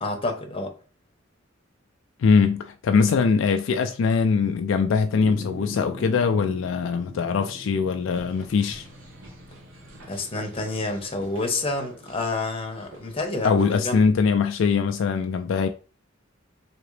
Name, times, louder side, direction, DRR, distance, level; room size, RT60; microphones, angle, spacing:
voice 1, 0.0-0.7 10.1-14.0, left 2 dB, 30° left, 0.9 m, -29 dB
voice 2, 2.2-8.9 13.4-15.7, left 5 dB, 70° left, 0.3 m, -22 dB
sound 1, 5.1-11.6, equal, 15° right, 0.9 m, -43 dB
sound 2, 8.0-13.7, right 1 dB, 75° right, 1.1 m, -48 dB
3.7 x 2.9 x 3.2 m
head